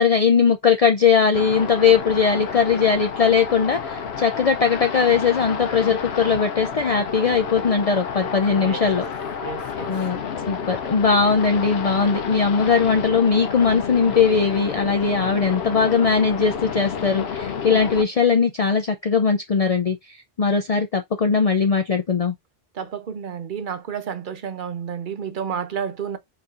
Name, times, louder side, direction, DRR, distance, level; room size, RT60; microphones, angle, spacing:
voice 1, 0.0-9.0 9.9-22.3, left 5 dB, 45° left, 0.6 m, -20 dB
sound 1, 1.3-18.0, left 6 dB, 75° left, 1.0 m, -30 dB
voice 2, 8.5-8.9 9.4-9.9 22.7-26.2, right 7 dB, 55° right, 0.9 m, -31 dB
4.3 x 4.0 x 2.5 m
omnidirectional pair, 1.1 m